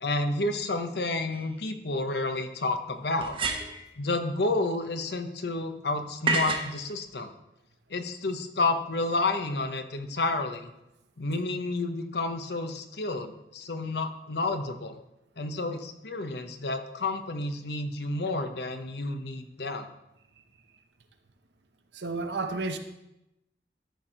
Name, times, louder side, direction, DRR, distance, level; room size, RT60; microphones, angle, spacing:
voice 1, 0.0-3.4 4.0-7.3 7.9-10.7 11.2-15.0 15.4-19.9, left 2 dB, 70° left, 7 dB, 0.9 m, -30 dB
sound 1, 1.3-1.4 3.2-3.9 6.3-6.7, right 3 dB, 30° right, 0.8 m, -28 dB
voice 2, 21.9-22.8, right 3 dB, 80° right, 6 dB, 0.9 m, -31 dB
12.5 x 4.5 x 5.1 m, 0.90 s
head